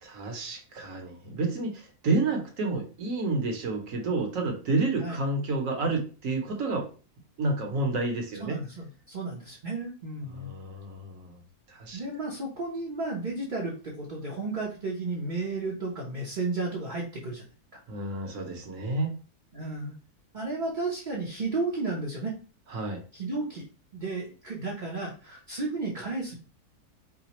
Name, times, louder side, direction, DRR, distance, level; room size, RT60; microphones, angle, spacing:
voice 1, 0.0-6.9 7.4-8.6 10.3-11.4 11.7-12.0 17.9-19.1 22.7-23.0, right 3 dB, 60° right, 2 dB, 1.2 m, -30 dB
voice 2, 8.4-10.5 11.9-17.4 19.5-19.9 20.3-22.4 23.1-23.6 23.9-26.3, right 3 dB, 40° right, -3 dB, 0.7 m, -33 dB
4.9 x 2.2 x 2.9 m, 0.36 s
omnidirectional pair, 1.7 m